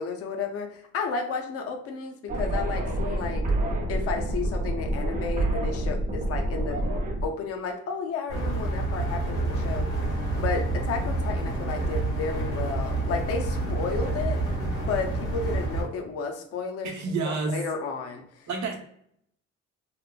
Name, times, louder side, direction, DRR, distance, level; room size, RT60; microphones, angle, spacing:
voice 1, 0.0-3.5 3.9-6.8 7.2-9.9 10.4-14.4 14.9-16.9 17.2-18.5, left 5 dB, 50° left, 3 dB, 0.5 m, -32 dB
sound 1, 2.3-7.3, right 1 dB, 25° right, 0.6 m, -27 dB
sound 2, 8.3-15.8, right 2 dB, 80° left, 1.3 m, -28 dB
voice 2, 16.8-17.6 18.5-18.8, right 4 dB, 65° right, 2 dB, 0.7 m, -29 dB
2.9 x 2.0 x 2.2 m, 0.70 s
cardioid pair, 90°, 30 cm